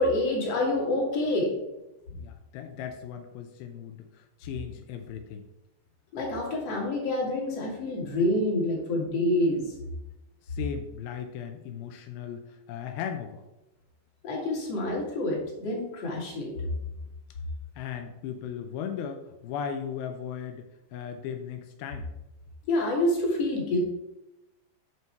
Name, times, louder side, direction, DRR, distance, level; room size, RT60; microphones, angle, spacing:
voice 1, 0.0-1.5 6.1-9.7 14.2-16.7 22.7-23.8, left 1 dB, 45° left, -2 dB, 2.5 m, -27 dB
voice 2, 2.1-5.5 10.4-13.4 17.8-22.1, left 8 dB, 90° left, 6 dB, 2.1 m, -37 dB
7.7 x 5.8 x 4.5 m, 0.95 s
omnidirectional pair, 5.0 m